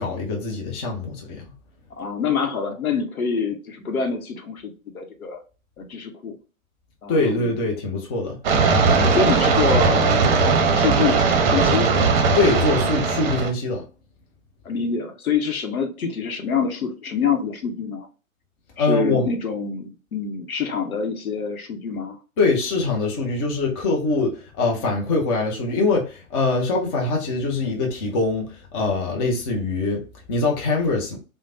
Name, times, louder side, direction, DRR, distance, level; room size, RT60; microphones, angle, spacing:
voice 1, 0.0-1.5 7.1-8.4 12.3-13.8 18.8-19.3 22.4-31.2, left 3 dB, 20° left, 0.4 m, -23 dB
voice 2, 1.9-5.4 5.8-6.4 7.0-7.5 9.0-10.2 10.7-11.9 14.6-18.1 18.8-22.2, left 6 dB, 80° left, 0.8 m, -26 dB
sound 1, 8.4-13.5, right 4 dB, 45° right, 0.7 m, -18 dB
3.1 x 2.1 x 2.5 m
figure-of-eight pair, 115°, 42 cm